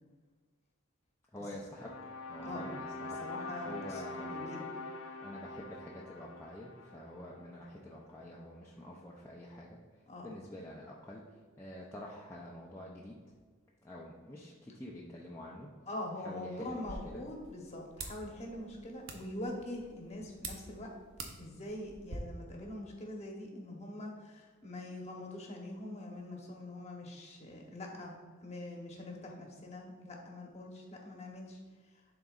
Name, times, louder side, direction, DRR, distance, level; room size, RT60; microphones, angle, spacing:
voice 1, 1.3-3.2 3.6-4.3 5.2-9.8 10.2-11.2 11.6-13.2 13.8-15.7 16.2-17.2, left 1 dB, 10° left, -4 dB, 0.5 m, -47 dB
sound 1, 1.7-7.9, left 2 dB, 70° left, 0.6 m, -44 dB
voice 2, 2.4-4.7 10.1-10.3 15.9-20.9 21.4-31.6, left 1 dB, 30° left, 0 dB, 0.9 m, -44 dB
sound 2, 16.7-22.2, right 3 dB, 60° right, 0.8 m, -48 dB
11.0 x 3.9 x 2.4 m, 1.5 s
head